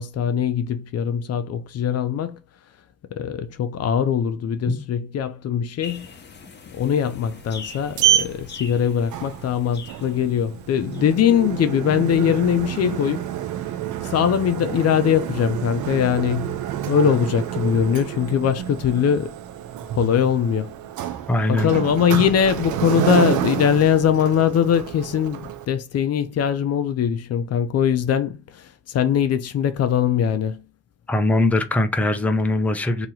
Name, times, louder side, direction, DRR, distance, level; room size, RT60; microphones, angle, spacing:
voice 1, 0.0-2.4 3.1-6.1 6.7-13.3 14.1-19.3 20.0-20.7 21.5-25.4 25.7-28.4 28.9-30.6, left 8 dB, 55° left, 0.5 m, -21 dB
sound 1, 5.8-11.1, left 5 dB, 35° left, 1.0 m, -42 dB
Sliding door, 7.4-25.7, right 11 dB, 80° right, 0.6 m, -28 dB
voice 2, 21.3-21.7 31.1-33.1, left 2 dB, 5° left, 0.5 m, -21 dB
2.9 x 2.8 x 3.8 m
cardioid pair, 90°, 30 cm